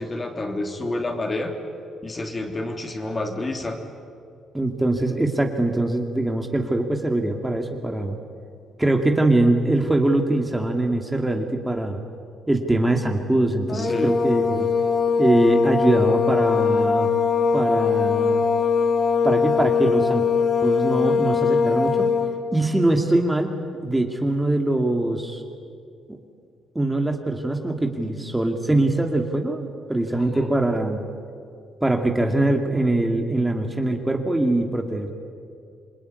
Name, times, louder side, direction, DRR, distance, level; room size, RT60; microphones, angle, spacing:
voice 1, 0.0-1.5 2.0-3.8 13.7-14.1 30.1-30.5, left 2 dB, 25° left, 4 dB, 3.3 m, -29 dB
voice 2, 4.5-8.2 8.8-12.0 12.5-14.7 15.2-17.1 17.5-18.4 19.2-20.2 20.6-22.1 22.5-25.4 26.1-26.2 26.7-31.0 31.8-35.1, right 1 dB, 10° right, 3 dB, 2.5 m, -22 dB
sound 1, 13.7-22.4, left 5 dB, 45° left, 3.0 m, -21 dB
28.0 x 21.5 x 9.8 m, 2.3 s
cardioid pair, 90°, 0 cm